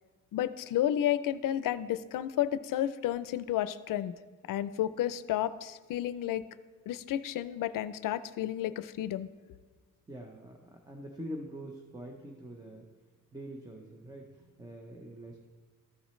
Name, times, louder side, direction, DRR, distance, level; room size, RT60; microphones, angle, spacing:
voice 1, 0.3-4.1 4.5-6.4 6.9-9.3, left 12 dB, 80° left, 15 dB, 0.5 m, -31 dB
voice 2, 10.1-12.9 13.3-15.4, right 1 dB, 10° right, 2 dB, 0.6 m, -44 dB
13.5 x 7.1 x 3.1 m, 1.4 s
wide cardioid pair, 150°, 33 cm